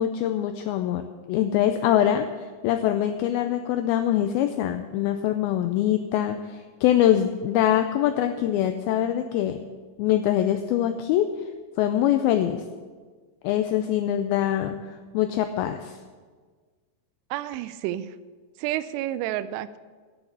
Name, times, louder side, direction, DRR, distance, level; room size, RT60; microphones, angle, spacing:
voice 1, 0.0-2.3 2.6-9.6 10.0-11.4 11.8-12.6 13.4-14.8 15.1-16.0, left 11 dB, 85° left, 8 dB, 2.2 m, -23 dB
voice 2, 17.3-18.1 18.6-19.8, right 13 dB, 90° right, 14 dB, 2.7 m, -30 dB
10.5 x 7.2 x 8.0 m, 1.5 s
omnidirectional pair, 4.8 m